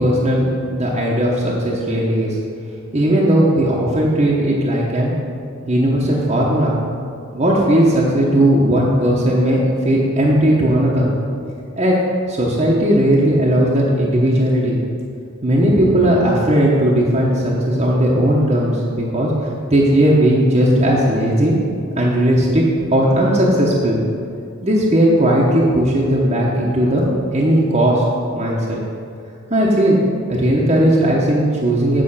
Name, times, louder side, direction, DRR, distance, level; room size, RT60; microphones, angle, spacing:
voice 1, 0.0-2.4 2.9-5.1 5.7-6.8 7.3-11.1 11.8-11.9 12.3-14.7 15.4-19.3 19.7-21.5 21.9-22.6 22.9-24.0 24.6-28.0 28.3-28.8 29.5-30.0 30.3-32.0, right 1 dB, 30° right, -5 dB, 0.9 m, -16 dB
8.8 x 5.5 x 5.6 m, 2.4 s
head